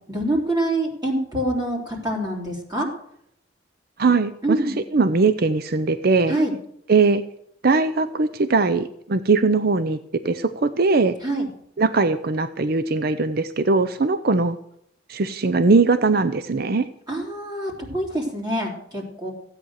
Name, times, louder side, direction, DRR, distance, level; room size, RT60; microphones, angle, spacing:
voice 1, 0.1-2.9 4.4-4.8 6.3-6.5 11.2-11.5 17.1-19.3, right 1 dB, 20° right, -2 dB, 3.3 m, -25 dB
voice 2, 4.0-4.6 4.9-6.4 6.9-7.2 7.6-10.0 10.2-11.2 11.8-14.6 15.1-16.9, right 3 dB, 50° right, 12 dB, 0.6 m, -20 dB
15.5 x 8.9 x 6.5 m, 0.72 s
head